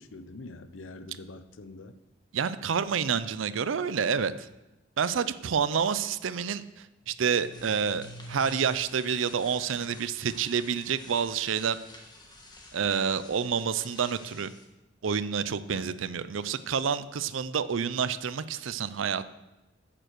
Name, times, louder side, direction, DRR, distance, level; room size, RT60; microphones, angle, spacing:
voice 1, 0.0-1.9 15.7-16.0, left 2 dB, 75° left, 11 dB, 0.7 m, -44 dB
voice 2, 2.3-4.5 5.0-6.6 7.1-11.8 12.7-14.5 15.0-19.3, right 6 dB, 75° right, 14 dB, 0.5 m, -28 dB
sound 1, 7.1-14.6, left 1 dB, 20° left, 1.5 m, -49 dB
8.9 x 7.6 x 6.5 m, 0.99 s
head